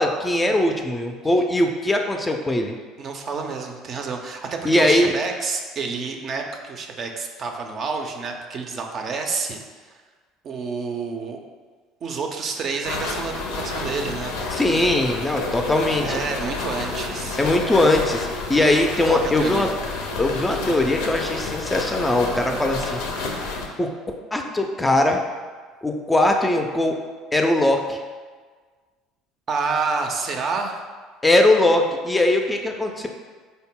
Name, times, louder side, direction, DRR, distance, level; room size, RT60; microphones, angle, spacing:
voice 1, 0.0-2.7 4.6-5.1 14.6-16.2 17.4-19.7 20.2-23.0 23.8-23.9 24.3-25.2 25.8-26.9 27.3-28.0 31.2-33.1, left 1 dB, 15° left, 3 dB, 0.4 m, -20 dB
voice 2, 3.0-9.6 10.4-11.4 12.0-14.4 16.0-17.4 18.5-18.7 19.0-19.7 29.5-30.8, right 4 dB, 45° right, 3 dB, 0.4 m, -28 dB
Rustle of rough fabric, 12.8-23.7, left 3 dB, 75° left, 0.5 m, -30 dB
3.9 x 2.0 x 3.6 m, 1.5 s
hypercardioid pair, 70°, 0 cm